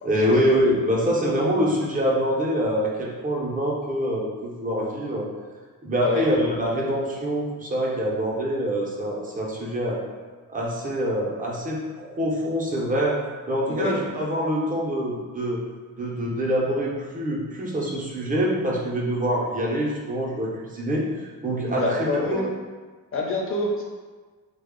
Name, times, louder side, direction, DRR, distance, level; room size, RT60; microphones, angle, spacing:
voice 1, 0.0-5.3 5.8-10.0 10.5-13.2 13.5-15.6 16.0-22.4, equal, 25° right, -3 dB, 0.5 m, -25 dB
voice 2, 13.7-14.0 21.7-22.4 23.1-23.8, left 2 dB, 40° left, -1 dB, 0.5 m, -26 dB
3.2 x 2.0 x 3.6 m, 1.4 s
wide cardioid pair, 170°, 35 cm